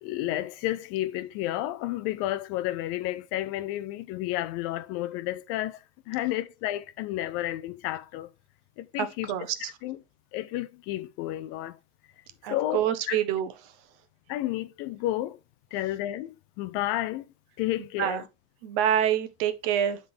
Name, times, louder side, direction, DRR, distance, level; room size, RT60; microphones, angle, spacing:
voice 1, 0.0-8.3 8.8-9.3 9.8-10.0 10.3-11.8 12.5-13.2 14.3-15.4 15.7-17.3 17.6-18.3, left 15 dB, 45° left, 0.4 m, -31 dB
voice 2, 9.0-9.6 12.4-13.5 18.0-18.2 18.6-20.0, right 10 dB, 65° right, 0.9 m, -26 dB
9.5 x 3.7 x 3.4 m
cardioid pair, 165°, 33 cm